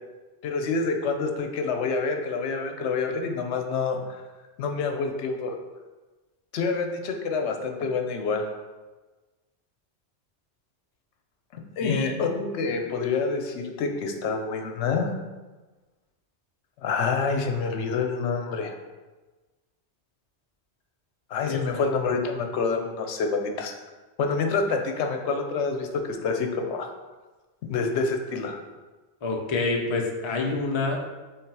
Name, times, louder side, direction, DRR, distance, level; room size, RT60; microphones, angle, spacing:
voice 1, 0.4-4.2 4.6-5.6 6.5-8.5 11.5-15.1 16.8-18.7 21.3-23.8 24.2-26.9 27.7-28.6, left 4 dB, 85° left, 4 dB, 0.9 m, -27 dB
voice 2, 11.8-12.1 21.5-21.6 29.2-31.0, left 3 dB, 35° left, 0 dB, 0.5 m, -27 dB
3.7 x 3.2 x 4.6 m, 1.2 s
omnidirectional pair, 1.1 m